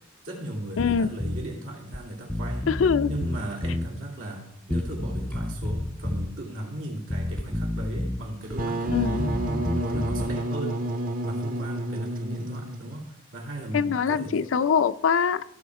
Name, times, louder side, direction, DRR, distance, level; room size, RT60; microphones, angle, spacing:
voice 1, 0.2-2.7 3.1-9.3 9.8-10.8 11.2-14.4, right 1 dB, 85° right, -2 dB, 3.2 m, -36 dB
voice 2, 0.8-1.1 2.7-3.1 8.9-9.2 13.7-15.4, left 6 dB, 75° left, 14 dB, 0.5 m, -23 dB
Bass guitar, 0.8-1.5 1.9-2.0 2.3-3.9 4.7-6.3 7.1-8.2 8.5-10.4, left 1 dB, 5° left, 0.4 m, -30 dB
Wind instrument woodwind instrument, 8.5-13.0, right 1 dB, 45° right, 0.8 m, -30 dB
16.0 x 6.3 x 4.8 m, 0.79 s
head